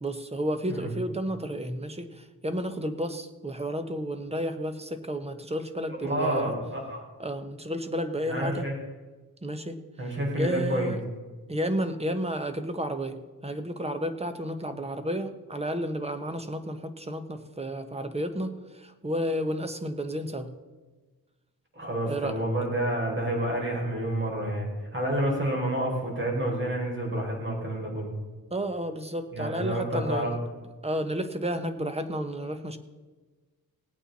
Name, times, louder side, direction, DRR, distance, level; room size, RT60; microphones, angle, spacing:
voice 1, 0.0-6.5 7.2-8.6 9.4-9.8 10.3-11.0 11.5-13.2 13.4-20.5 22.1-22.4 28.5-30.4 30.8-32.8, equal, 15° right, 8 dB, 1.1 m, -32 dB
voice 2, 6.0-7.0 8.2-8.7 10.0-11.0 21.7-28.1 29.3-30.3, right 1 dB, 35° right, -2 dB, 5.0 m, -29 dB
18.5 x 8.9 x 4.2 m, 1.3 s
wide cardioid pair, 115°, 36 cm